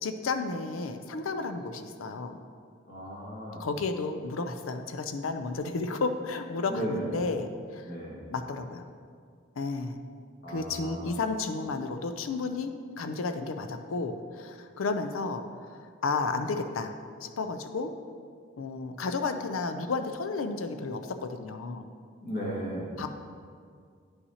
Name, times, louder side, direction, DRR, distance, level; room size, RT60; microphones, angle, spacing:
voice 1, 0.0-2.4 3.6-7.9 8.3-8.8 9.6-10.0 10.5-15.4 15.7-16.9 17.2-17.9 18.6-21.9 23.0-23.1, left 3 dB, 90° left, 7 dB, 0.5 m, -32 dB
voice 2, 2.9-3.7 6.7-7.0 7.9-8.2 10.4-11.2 22.2-22.9, right 1 dB, 50° left, -6 dB, 1.8 m, -35 dB
9.4 x 5.6 x 2.8 m, 2.1 s
head